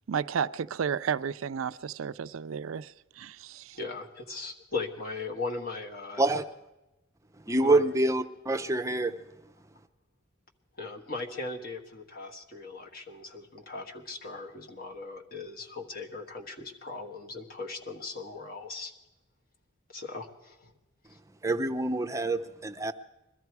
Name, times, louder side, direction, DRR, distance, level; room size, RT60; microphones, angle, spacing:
voice 1, 0.1-3.8, right 7 dB, 80° right, 0.4 m, -32 dB
voice 2, 3.7-6.2 7.6-7.9 10.8-18.9 19.9-20.7 21.1-21.2, left 3 dB, 45° left, 1.5 m, -38 dB
voice 3, 7.5-9.1 21.4-22.9, right 2 dB, 15° right, 0.6 m, -26 dB
21.5 x 13.5 x 4.7 m
head